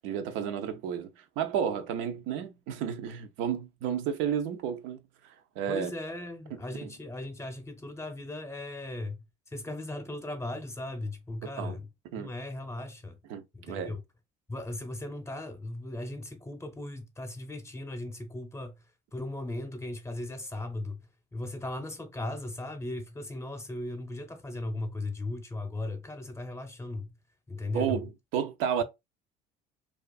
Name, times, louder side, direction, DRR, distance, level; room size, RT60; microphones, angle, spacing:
voice 1, 0.0-5.9 6.8-6.9 11.4-11.8 12.1-12.3 13.3-13.9 27.7-28.8, right 8 dB, 70° right, 0.5 m, -32 dB
voice 2, 5.7-11.9 12.2-13.2 13.5-14.0 14.5-18.8 19.1-21.0 21.3-27.2 27.5-28.0, left 2 dB, 15° left, 0.7 m, -37 dB
2.4 x 2.4 x 2.3 m
supercardioid pair, 80°, 21 cm